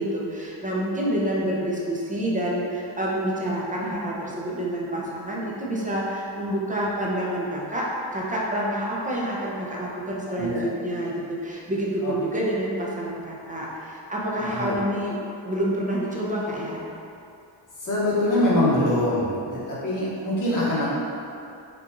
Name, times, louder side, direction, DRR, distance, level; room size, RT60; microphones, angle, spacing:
voice 1, 0.0-15.2 15.4-16.8, right 1 dB, 15° right, -5 dB, 0.6 m, -28 dB
voice 2, 14.4-14.7 17.8-20.9, left 1 dB, 40° left, -8 dB, 1.1 m, -24 dB
4.5 x 2.4 x 2.5 m, 2.6 s
cardioid pair, 80°, 47 cm